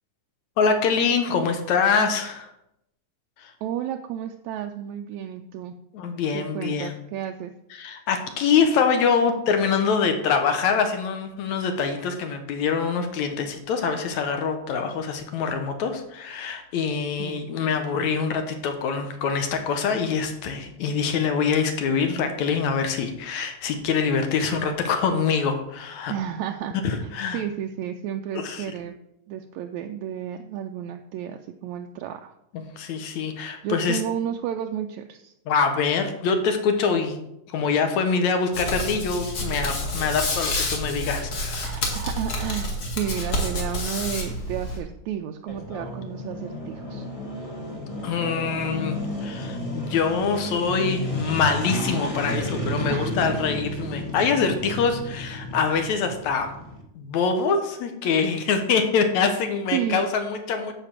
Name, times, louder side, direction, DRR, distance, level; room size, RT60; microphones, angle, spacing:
voice 1, 0.6-2.5 3.4-3.5 5.9-6.9 7.7-26.1 26.8-27.4 28.3-28.7 32.5-34.0 35.5-41.7 48.0-56.5 57.0-60.7, left 5 dB, 70° left, 6 dB, 2.2 m, -24 dB
voice 2, 3.6-5.7 6.3-7.5 17.2-17.4 26.1-26.8 27.3-28.9 29.3-32.3 33.6-35.3 41.6-47.1 52.9-53.3 59.7-60.0, right 10 dB, 80° right, 4 dB, 1.7 m, -32 dB
Hands, 38.5-44.8, left 1 dB, 45° left, 2.5 m, -29 dB
sound 1, 45.5-56.8, left 1 dB, 25° left, 0.8 m, -32 dB
10.0 x 5.0 x 7.4 m, 0.81 s
omnidirectional pair, 3.7 m